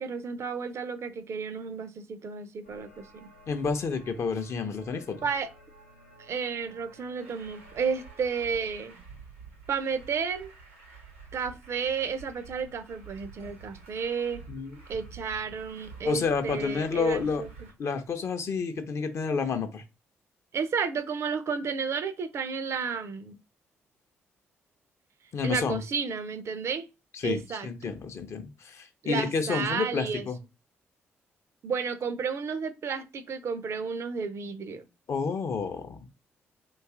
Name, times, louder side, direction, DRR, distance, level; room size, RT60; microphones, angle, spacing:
voice 1, 0.0-3.3 5.2-5.5 6.2-9.0 9.7-10.5 11.3-14.4 14.9-17.5 20.5-23.4 25.4-26.9 27.2-28.0 29.0-30.3 31.6-34.8, right 5 dB, 45° right, 0.4 m, -32 dB
sound 1, 2.6-8.5, equal, 90° left, 0.7 m, -55 dB
voice 2, 3.5-5.3 14.5-14.7 16.0-17.4 17.8-19.8 25.3-25.8 27.1-30.4 35.1-36.0, left 5 dB, 45° left, 0.5 m, -30 dB
Truck, 7.2-17.7, right 5 dB, 80° right, 0.6 m, -49 dB
2.6 x 2.4 x 3.5 m
figure-of-eight pair, 40°, 7 cm